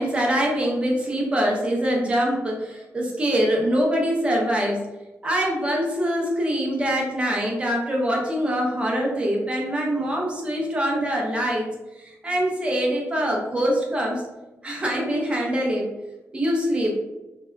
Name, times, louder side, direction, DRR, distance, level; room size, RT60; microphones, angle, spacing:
voice 1, 0.0-4.8 5.2-11.6 12.0-14.2 14.6-15.9 16.3-16.9, equal, 20° right, -1 dB, 0.6 m, -24 dB
2.7 x 2.2 x 2.2 m, 1.0 s
wide cardioid pair, 150°, 5 cm